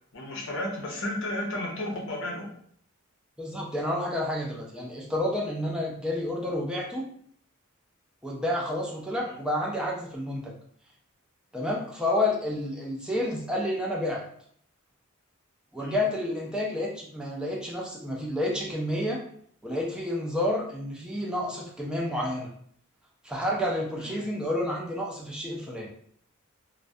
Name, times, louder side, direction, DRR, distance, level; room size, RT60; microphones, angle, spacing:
voice 1, 0.1-2.5 9.2-9.4 15.8-16.0 24.0-24.2, left 1 dB, 60° left, -1 dB, 0.6 m, -33 dB
voice 2, 3.4-7.1 8.2-10.5 11.5-14.2 15.7-19.2 19.6-22.5 23.2-25.9, left 1 dB, 5° right, -2 dB, 0.4 m, -30 dB
2.2 x 2.1 x 2.6 m, 0.62 s
head